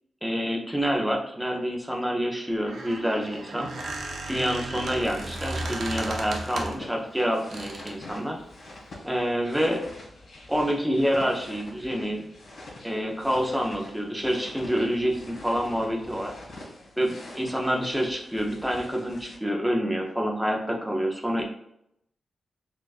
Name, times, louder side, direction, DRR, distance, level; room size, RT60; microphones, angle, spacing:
voice 1, 0.2-3.7 4.3-8.4 9.0-9.8 10.5-12.2 12.8-16.3 17.0-21.4, equal, 5° right, 1 dB, 0.4 m, -27 dB
Squeak, 2.5-6.9 7.5-8.0, right 2 dB, 80° right, 0.5 m, -35 dB
sound 1, 3.7-19.4, left 1 dB, 80° left, 1.4 m, -46 dB
3.9 x 2.3 x 2.3 m, 0.76 s
wide cardioid pair, 155°, 0 cm